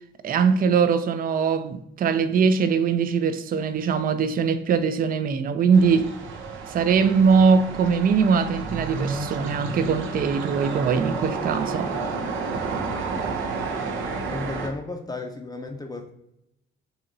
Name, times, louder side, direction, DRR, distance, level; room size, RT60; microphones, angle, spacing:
voice 1, 0.2-6.1 6.7-11.9, right 6 dB, 45° right, 0.4 m, -21 dB
sound 1, 5.7-14.7, right 4 dB, 80° right, 0.7 m, -31 dB
voice 2, 12.8-13.5 14.3-16.1, left 3 dB, 20° left, 0.5 m, -35 dB
6.7 x 2.9 x 2.6 m
cardioid pair, 90°, 20 cm